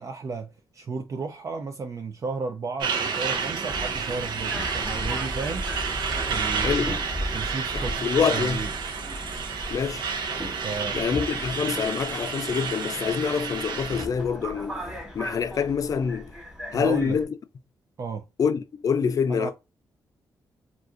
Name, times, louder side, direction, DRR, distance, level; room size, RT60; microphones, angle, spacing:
voice 1, 0.0-5.7 6.3-6.7 7.3-8.0 8.3-8.7 10.6-11.0 16.7-17.2 18.0-18.3 19.3-19.5, right 4 dB, 45° right, 0.4 m, -33 dB
Truck, 2.8-14.0, right 6 dB, 80° right, 0.7 m, -30 dB
Subway metro underground, 3.7-17.2, equal, 5° right, 1.2 m, -37 dB
voice 2, 6.6-7.0 7.7-8.6 9.7-10.0 10.9-14.9 15.1-16.3 16.7-17.3 18.4-19.5, left 6 dB, 50° left, 0.4 m, -26 dB
2.5 x 2.4 x 3.6 m
cardioid pair, 100°, 8 cm